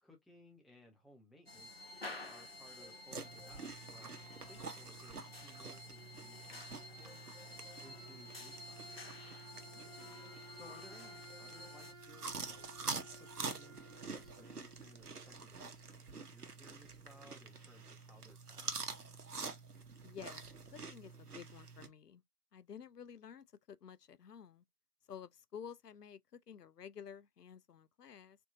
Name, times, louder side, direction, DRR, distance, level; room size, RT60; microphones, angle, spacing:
voice 1, 0.0-1.8 2.2-7.3 7.8-9.2 10.5-12.7 13.1-18.7, left 1 dB, ahead, 0.5 m, -61 dB
sound 1, 1.5-11.9, left 2 dB, 40° left, 0.7 m, -51 dB
sound 2, 3.1-21.9, right 4 dB, 75° right, 1.0 m, -47 dB
Wind instrument woodwind instrument, 6.9-16.0, right 1 dB, 55° right, 0.8 m, -59 dB
voice 2, 9.7-10.3 20.0-20.4 20.7-22.2 22.5-24.6 25.1-28.4, left 8 dB, 80° left, 0.6 m, -52 dB
4.4 x 2.8 x 2.6 m
figure-of-eight pair, 165°, 46 cm